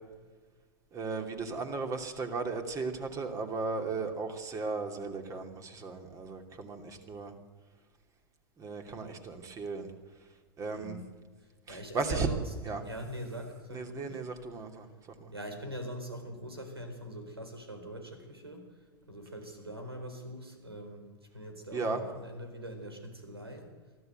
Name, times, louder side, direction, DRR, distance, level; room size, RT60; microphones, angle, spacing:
voice 1, 0.9-7.3 8.6-9.9 10.6-11.0 11.7-12.3 12.7-12.8 13.7-14.9 15.2-15.3 21.7-22.0, right 4 dB, 25° right, 5 dB, 2.8 m, -35 dB
voice 2, 10.7-11.1 11.7-12.5 12.8-14.2 15.3-18.7 19.1-21.1 21.3-23.7, equal, 90° right, 6 dB, 4.3 m, -42 dB
23.5 x 14.5 x 8.0 m, 1.4 s
figure-of-eight pair, 95°, 13 cm